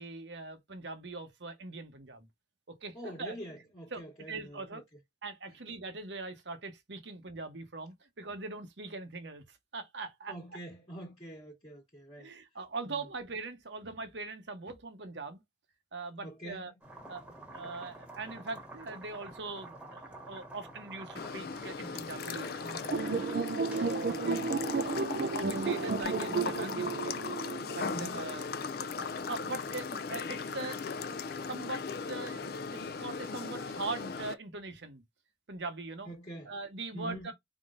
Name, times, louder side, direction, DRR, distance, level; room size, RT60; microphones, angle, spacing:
voice 1, 0.0-2.3 2.7-3.3 3.9-4.0 4.3-4.8 5.2-10.4 12.2-15.4 15.9-16.7 17.1-23.2 23.7-24.2 24.8-27.2 27.7-28.4 29.0-32.4 32.7-35.0 35.5-36.1 36.5-37.3, right 3 dB, 70° right, 1.0 m, -41 dB
voice 2, 2.9-4.8 10.3-12.3 12.9-13.1 16.2-16.7 17.8-17.9 24.0-24.6 27.8-28.3 36.0-36.5 36.9-37.3, right 1 dB, 30° left, 1.3 m, -45 dB
sound 1, 16.8-26.0, right 2 dB, 5° right, 1.2 m, -50 dB
sound 2, 21.2-34.3, left 5 dB, 50° left, 0.4 m, -38 dB
sound 3, 22.9-28.3, right 4 dB, 50° right, 0.4 m, -33 dB
4.5 x 3.7 x 2.5 m
head